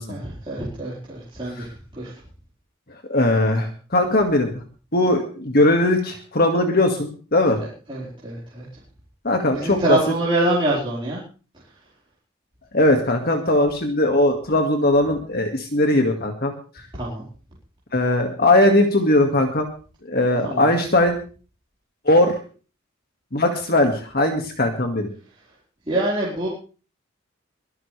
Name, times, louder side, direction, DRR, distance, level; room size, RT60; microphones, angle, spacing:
voice 1, 0.1-1.7 1.9-2.1 7.9-8.7 9.5-11.2 16.9-17.3 20.4-20.6 25.9-26.5, right 1 dB, 25° right, -7 dB, 4.7 m, -25 dB
voice 2, 3.1-4.6 4.9-7.6 9.2-10.0 12.7-16.5 17.9-19.7 20.0-21.2 22.1-22.4 23.3-25.1, left 1 dB, 45° left, 4 dB, 2.1 m, -19 dB
23.5 x 12.0 x 3.4 m, 0.39 s
head